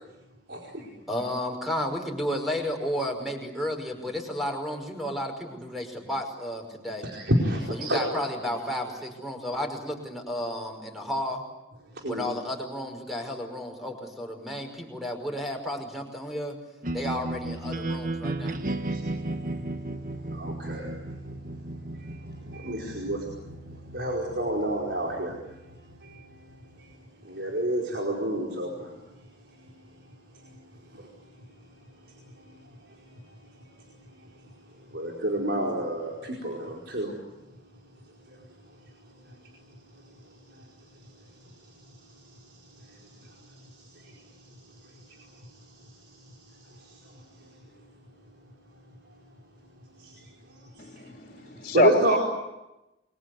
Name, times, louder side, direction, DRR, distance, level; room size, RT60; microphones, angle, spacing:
voice 1, 0.5-0.9 7.1-8.0 12.0-12.3 18.9-19.0 20.3-20.9 22.0-22.2 22.5-23.2 23.9-25.3 26.0-26.2 27.2-28.9 30.9-31.0 34.9-37.1 44.0-44.1 50.0-50.1 51.7-52.2, right 1 dB, 75° right, 4.8 m, -28 dB
voice 2, 1.1-7.1 7.7-11.4 12.0-16.6 16.9-18.6, left 1 dB, ahead, 5.5 m, -32 dB
sound 1, 16.8-26.9, right 1 dB, 50° right, 1.5 m, -35 dB
voice 3, 50.8-52.2, left 2 dB, 45° left, 2.8 m, -25 dB
29.0 x 23.0 x 8.1 m
head